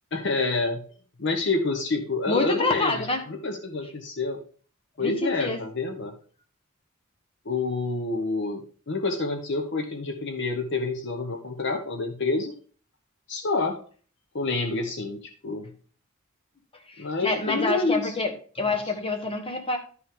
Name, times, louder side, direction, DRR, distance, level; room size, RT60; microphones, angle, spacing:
voice 1, 0.1-0.8 1.2-4.4 5.0-6.1 7.4-12.5 13.3-13.8 14.3-15.7 17.0-18.1 18.6-18.7, left 3 dB, 55° left, 5 dB, 0.9 m, -28 dB
voice 2, 2.3-3.2 5.0-5.6 16.9-19.8, left 3 dB, 25° left, 5 dB, 1.4 m, -27 dB
11.5 x 5.6 x 3.6 m, 0.42 s
head